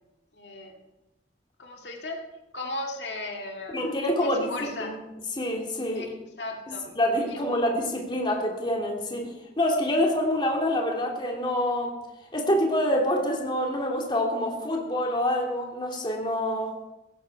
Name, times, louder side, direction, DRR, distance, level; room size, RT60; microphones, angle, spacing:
voice 1, 0.3-0.7 1.6-2.2 2.5-5.0 5.9-6.1 6.4-6.9 7.3-7.6, left 2 dB, 75° left, 1 dB, 2.1 m, -36 dB
voice 2, 3.7-4.9 5.3-6.2 6.7-12.0 12.3-16.7, left 1 dB, 25° left, 0 dB, 2.8 m, -26 dB
17.0 x 13.5 x 4.8 m, 0.98 s
head